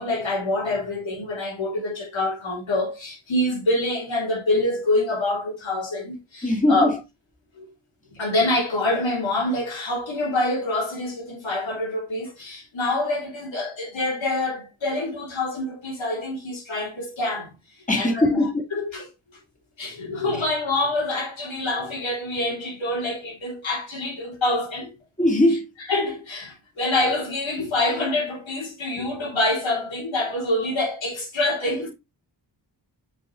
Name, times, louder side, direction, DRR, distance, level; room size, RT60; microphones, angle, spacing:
voice 1, 0.0-7.0 7.6-7.7 8.2-17.5 18.0-19.1 19.8-24.9 25.5-31.9, left 2 dB, 80° left, 3.4 m, -26 dB
voice 2, 6.4-6.9 17.9-18.5 25.2-25.7, left 1 dB, 15° left, 2.4 m, -20 dB
6.8 x 6.3 x 3.2 m
wide cardioid pair, 75°, 46 cm